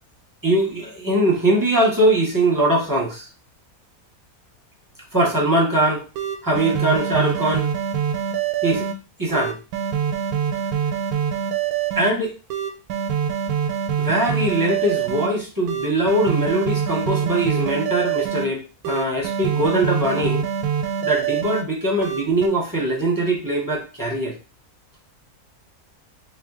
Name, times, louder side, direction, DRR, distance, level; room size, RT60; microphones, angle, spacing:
voice 1, 0.4-3.3 5.1-6.0 6.4-7.7 8.6-8.9 9.2-9.6 12.0-12.4 14.0-20.5 21.0-24.3, right 1 dB, 20° right, -3 dB, 0.7 m, -21 dB
sound 1, 5.7-5.8 6.2-8.9 9.3-12.1 12.5-15.3 15.7-18.5 18.8-21.6 22.0-22.5, right 8 dB, 90° right, 1.1 m, -25 dB
2.8 x 2.3 x 3.6 m, 0.32 s
omnidirectional pair, 1.6 m